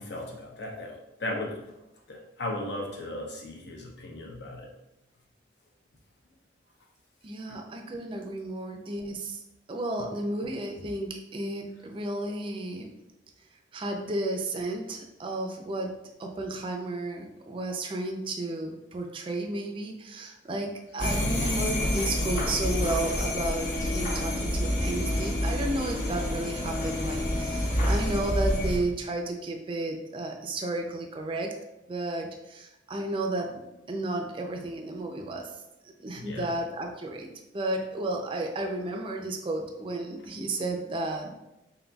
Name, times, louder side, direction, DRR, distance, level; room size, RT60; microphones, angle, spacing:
voice 1, 0.0-1.6 2.1-4.7 7.5-7.6 36.2-36.5, left 1 dB, 65° left, 0 dB, 0.8 m, -36 dB
voice 2, 7.2-9.4 9.7-12.9 13.7-31.6 31.9-33.6 33.9-35.6 35.8-41.3, right 2 dB, 30° right, 3 dB, 0.4 m, -33 dB
sound 1, 21.0-28.8, left 1 dB, 45° left, 1.1 m, -28 dB
4.0 x 3.9 x 2.3 m, 0.92 s
head